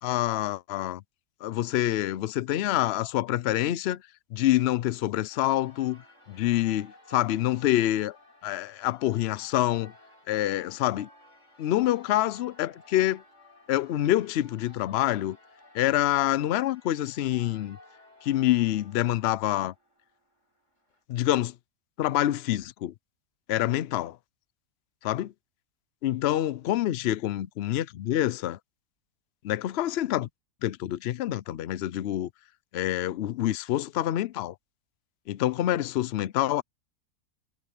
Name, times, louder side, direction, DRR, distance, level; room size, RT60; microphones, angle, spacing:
voice 1, 0.0-1.0 1.4-4.0 4.3-6.0 6.3-8.2 8.4-9.9 10.3-11.1 11.6-13.2 13.7-15.4 15.7-17.8 18.2-19.7 21.1-21.5 22.0-22.9 23.5-24.2 25.0-25.3 26.0-28.6 29.4-30.3 30.6-32.3 32.7-34.5 35.3-36.6, left 13 dB, 75° left, 0.5 m, -26 dB
Church bell, 5.3-21.0, left 1 dB, 50° left, 6.8 m, -56 dB
omnidirectional pair, 1.7 m